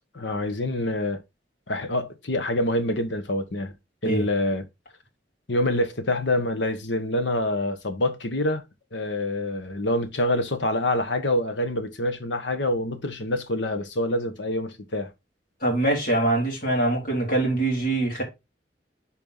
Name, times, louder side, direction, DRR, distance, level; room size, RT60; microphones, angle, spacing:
voice 1, 0.1-1.2 1.7-3.7 4.0-4.6 5.5-8.6 8.9-15.1, left 1 dB, 90° left, 1.2 m, -26 dB
voice 2, 15.6-18.2, right 2 dB, 50° left, 3.4 m, -23 dB
7.2 x 4.5 x 3.9 m
head